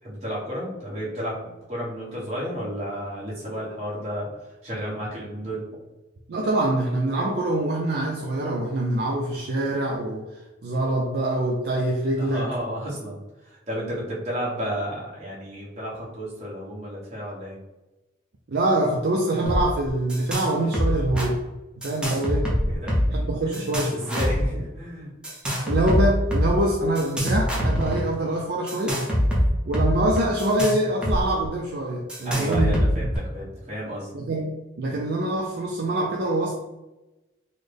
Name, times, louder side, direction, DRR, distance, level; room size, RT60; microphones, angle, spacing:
voice 1, 0.0-4.3 4.6-5.6 12.2-13.2 13.4-17.6 22.7-23.2 23.5-23.7 23.9-25.1 32.2-34.1, equal, 35° right, -7 dB, 1.2 m, -32 dB
voice 2, 6.3-12.5 18.5-21.4 21.8-22.5 23.1-24.0 25.7-29.0 29.7-33.1 34.1-36.5, right 1 dB, 55° right, -1 dB, 0.4 m, -25 dB
sound 1, 19.5-19.6 19.9-20.5 20.7-21.3 21.8-23.2 23.5-24.4 25.2-26.5 27.0-28.0 28.7-31.2 31.4-31.5 32.1-33.2, equal, 5° right, 0.7 m, -24 dB
3.9 x 2.0 x 3.3 m, 1.0 s
head